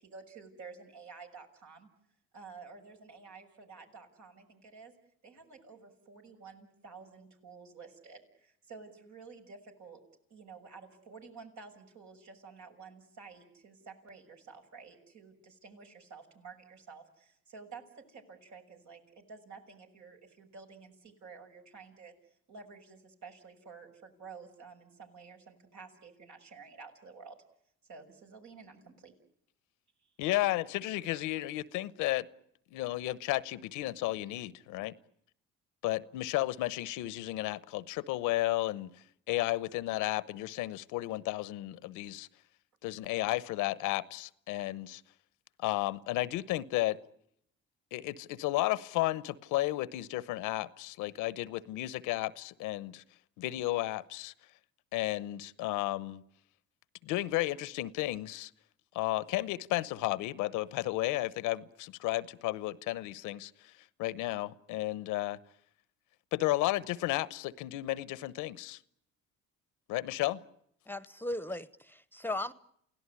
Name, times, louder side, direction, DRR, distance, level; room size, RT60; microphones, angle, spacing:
voice 1, 0.0-1.9 2.3-4.9 5.2-10.0 10.3-27.4 27.9-29.1 30.0-30.1, right 5 dB, 70° right, 6.5 m, -51 dB
voice 2, 30.2-32.3 32.7-34.9 35.8-38.9 39.3-42.3 42.8-45.0 45.6-47.0 47.9-53.0 53.4-54.3 54.9-56.2 57.0-58.5 58.9-63.7 64.0-65.4 66.3-68.8 69.9-70.4, left 17 dB, 85° left, 0.9 m, -33 dB
voice 3, 70.9-72.5, left 1 dB, 5° left, 1.0 m, -37 dB
29.0 x 17.0 x 9.7 m
supercardioid pair, 80°, 30 cm